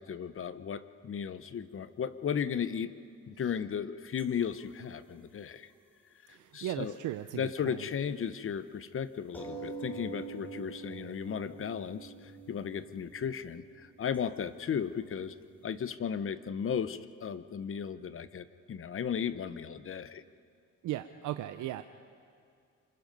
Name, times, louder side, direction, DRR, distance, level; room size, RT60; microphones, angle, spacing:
voice 1, 0.0-2.9 3.3-5.7 6.3-6.9 7.3-15.3 15.6-20.2, left 7 dB, 45° left, 13 dB, 0.8 m, -35 dB
sound 1, 4.2-5.8 6.3-7.5 7.8-7.9 8.3-8.4 9.2-15.9, right 4 dB, 5° left, 3.9 m, -46 dB
voice 2, 6.3-7.9 20.8-21.8, right 13 dB, 80° right, 9 dB, 0.7 m, -37 dB
26.5 x 25.0 x 5.4 m, 2.3 s
cardioid pair, 90°, 30 cm